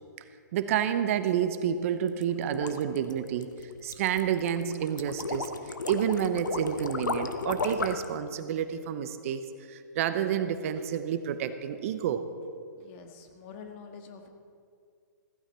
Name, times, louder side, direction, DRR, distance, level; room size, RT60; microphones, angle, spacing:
voice 1, 0.5-3.5 3.8-9.4 9.7-12.3, right 9 dB, 45° right, 10 dB, 0.9 m, -29 dB
sound 1, 2.1-8.1, left 3 dB, 80° left, 1.1 m, -34 dB
voice 2, 12.8-14.3, left 5 dB, 40° left, 4 dB, 1.8 m, -46 dB
15.5 x 15.0 x 4.4 m, 2.3 s
hypercardioid pair, 125°, 10 cm